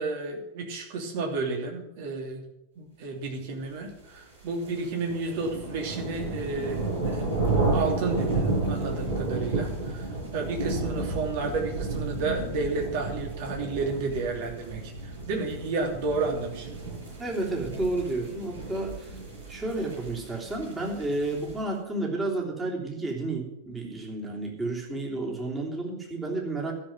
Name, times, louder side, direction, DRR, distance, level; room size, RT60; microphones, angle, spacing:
voice 1, 0.0-2.4 2.8-7.3 7.7-16.7, right 3 dB, 50° right, 2 dB, 2.9 m, -32 dB
sound 1, 4.1-21.7, right 3 dB, 75° right, 6.7 m, -32 dB
voice 2, 17.2-19.1 19.5-26.7, right 2 dB, 15° right, -1 dB, 3.2 m, -31 dB
13.0 x 6.7 x 9.1 m, 0.86 s
figure-of-eight pair, 90°, 0 cm